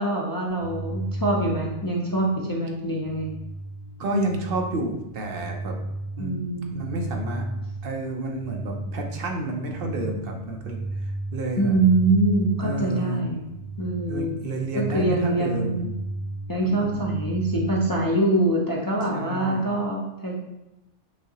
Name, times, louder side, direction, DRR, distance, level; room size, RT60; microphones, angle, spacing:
voice 1, 0.0-3.3 6.2-6.8 11.6-13.5 13.8-14.3 14.8-15.9 16.5-20.3, right 2 dB, 35° left, -3 dB, 0.3 m, -24 dB
sound 1, 0.6-18.2, right 2 dB, 80° left, 1.6 m, -35 dB
voice 2, 4.0-5.9 6.2-6.4 6.7-7.4 7.8-10.8 11.3-11.8 12.6-13.2 14.1-15.9 16.6-17.0 19.1-19.6, right 2 dB, 55° right, 2 dB, 0.8 m, -30 dB
6.2 x 2.8 x 2.8 m, 0.92 s
omnidirectional pair, 1.2 m